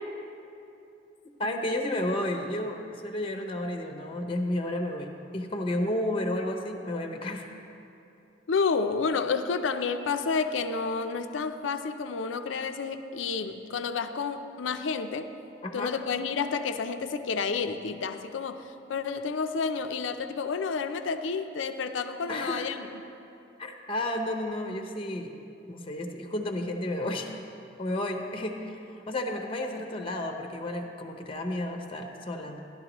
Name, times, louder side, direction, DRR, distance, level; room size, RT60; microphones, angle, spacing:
voice 1, 1.4-7.5 15.6-15.9 22.3-22.7 23.6-25.3 25.7-27.3 27.8-32.6, left 1 dB, 30° left, 4 dB, 0.7 m, -32 dB
voice 2, 8.5-15.3 15.7-23.0, left 5 dB, 80° left, 9 dB, 0.5 m, -30 dB
13.0 x 11.5 x 3.0 m, 2.7 s
head